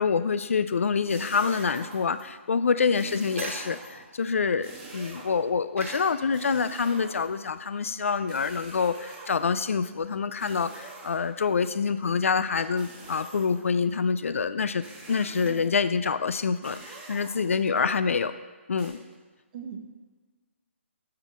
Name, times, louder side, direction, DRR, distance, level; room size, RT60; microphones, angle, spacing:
voice 1, 0.0-18.3 18.7-19.0, left 5 dB, 80° left, 12 dB, 0.4 m, -26 dB
sound 1, 0.9-2.3 2.9-4.1 4.6-5.5 6.3-7.5 8.3-9.7 10.4-11.5 12.8-13.7 14.8-15.7 16.6-17.8 18.8-18.9, right 3 dB, 15° right, 1.2 m, -46 dB
sound 2, 2.3-16.6, right 2 dB, 80° right, 1.4 m, -47 dB
voice 2, 2.8-3.2 15.4-15.8 17.8-17.9 19.5-19.9, right 6 dB, 35° right, 4 dB, 0.8 m, -41 dB
6.6 x 3.7 x 5.9 m, 1.4 s
hypercardioid pair, 155°, 7 cm